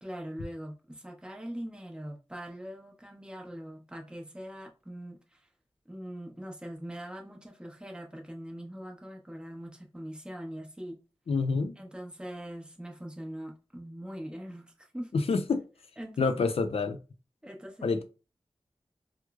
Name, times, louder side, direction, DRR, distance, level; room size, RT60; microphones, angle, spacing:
voice 1, 0.0-5.5 5.9-11.0 11.8-15.1 16.0-16.3 17.4-18.0, equal, 10° right, 0.8 m, -42 dB
voice 2, 11.3-11.8 15.1-15.6 16.2-17.0 17.8-18.0, left 4 dB, 90° left, 0.4 m, -27 dB
4.5 x 2.0 x 2.3 m
wide cardioid pair, 90°, 10 cm